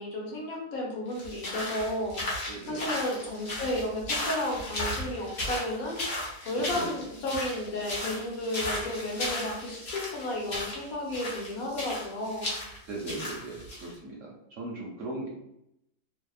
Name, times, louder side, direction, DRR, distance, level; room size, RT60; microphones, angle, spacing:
voice 1, 0.0-12.5, left 1 dB, 70° left, -2 dB, 1.0 m, -33 dB
sound 1, 1.1-13.9, left 1 dB, 50° left, 0.7 m, -35 dB
voice 2, 2.5-2.9 6.7-7.0 12.9-15.3, right 2 dB, 65° right, -3 dB, 0.8 m, -38 dB
2.7 x 2.0 x 2.3 m, 0.80 s
omnidirectional pair, 1.7 m